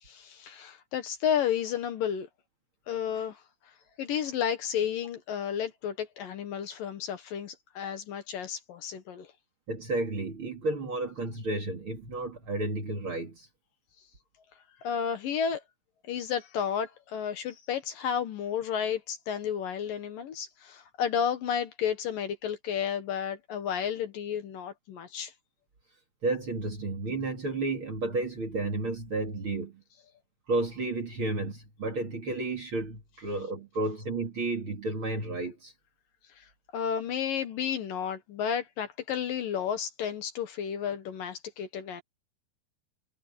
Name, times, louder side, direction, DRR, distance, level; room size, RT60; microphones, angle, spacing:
voice 1, 0.0-2.3 2.9-3.4 4.0-9.3 14.8-15.6 16.1-25.3 36.4-42.0, left 8 dB, 65° left, 2.8 m, -32 dB
voice 2, 9.7-13.5 26.2-29.8 30.5-35.7, right 2 dB, 35° right, 2.7 m, -32 dB
omnidirectional pair, 4.7 m